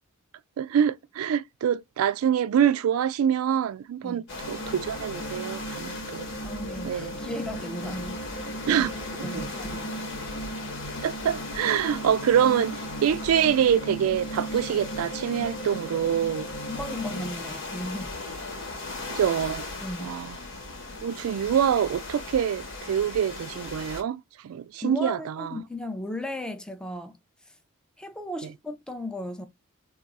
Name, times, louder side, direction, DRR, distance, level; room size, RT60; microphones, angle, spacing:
voice 1, 0.6-6.3 6.8-7.1 8.7-8.9 9.2-9.5 11.0-16.5 19.1-19.6 20.0-20.3 21.0-25.6, right 9 dB, 85° right, 0.3 m, -25 dB
sound 1, 4.3-24.0, left 3 dB, 60° left, 1.0 m, -38 dB
sound 2, 4.4-17.3, right 1 dB, 75° left, 0.9 m, -37 dB
voice 2, 6.4-8.9 9.2-10.0 16.7-18.2 19.8-20.2 24.8-27.2 28.0-29.5, left 1 dB, 5° left, 0.4 m, -36 dB
2.3 x 2.3 x 4.0 m
head